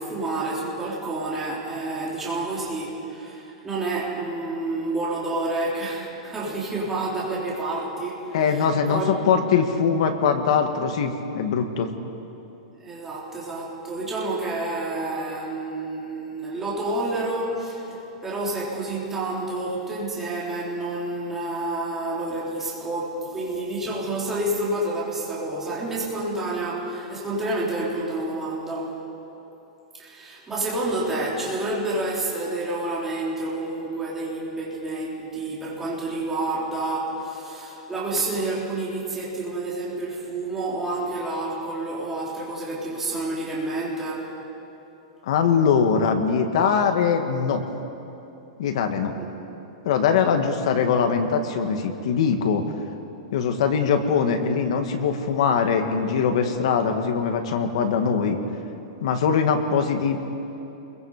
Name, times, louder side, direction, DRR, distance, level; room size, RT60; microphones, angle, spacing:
voice 1, 0.0-9.2 12.8-29.0 30.0-44.3 49.2-49.3, right 2 dB, 10° right, -6 dB, 4.1 m, -29 dB
voice 2, 8.3-11.9 45.2-47.6 48.6-49.2 49.8-52.6 53.3-58.4 59.0-60.2, left 6 dB, 60° left, 5 dB, 2.0 m, -22 dB
29.0 x 22.5 x 5.2 m, 2.9 s
supercardioid pair, 170°, 4 cm